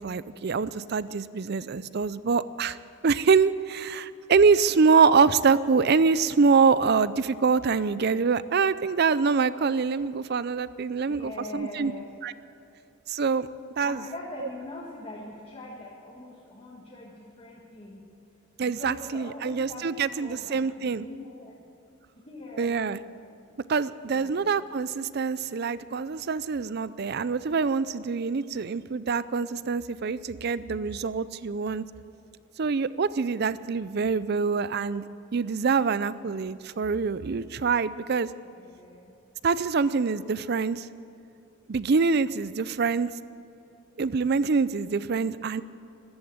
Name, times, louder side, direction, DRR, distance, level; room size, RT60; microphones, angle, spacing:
voice 1, 0.0-2.8 3.0-11.9 12.2-12.3 13.1-13.5 13.8-14.0 18.6-21.0 22.6-23.0 23.7-31.8 32.6-35.0 35.3-38.3 39.4-40.9 41.7-43.1 44.0-45.6, right 5 dB, 50° right, 16 dB, 0.4 m, -25 dB
voice 2, 11.0-12.1 13.8-18.1 18.6-21.6 22.2-22.9 24.1-24.5 38.5-39.1, left 1 dB, 30° left, -5 dB, 1.7 m, -42 dB
14.5 x 12.5 x 7.9 m, 2.7 s
head